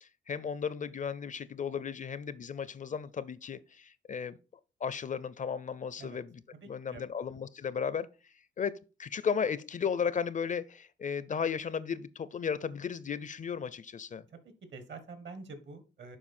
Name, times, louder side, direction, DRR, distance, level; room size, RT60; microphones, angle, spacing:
voice 1, 0.0-4.4 4.8-6.4 6.7-8.1 8.6-8.7 9.0-14.2, left 7 dB, 40° left, 0.4 m, -35 dB
voice 2, 6.6-7.1 14.3-16.2, right 3 dB, 65° right, 1.5 m, -47 dB
7.4 x 5.1 x 4.2 m
wide cardioid pair, 130°, 20 cm